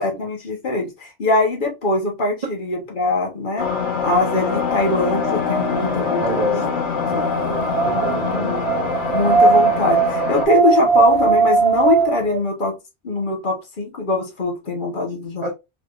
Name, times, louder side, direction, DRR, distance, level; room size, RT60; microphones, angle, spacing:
voice 1, 0.0-3.7 4.0-6.4 8.2-8.6 9.1-12.7 13.0-15.5, left 2 dB, 50° left, 1.1 m, -22 dB
sound 1, 3.6-10.5, left 5 dB, 80° left, 1.4 m, -24 dB
Wind, 4.4-12.4, right 5 dB, 65° right, 1.1 m, -20 dB
voice 2, 6.2-6.7 7.1-8.6 15.4-15.5, right 1 dB, 45° right, 0.6 m, -28 dB
4.0 x 3.2 x 2.4 m
omnidirectional pair, 1.2 m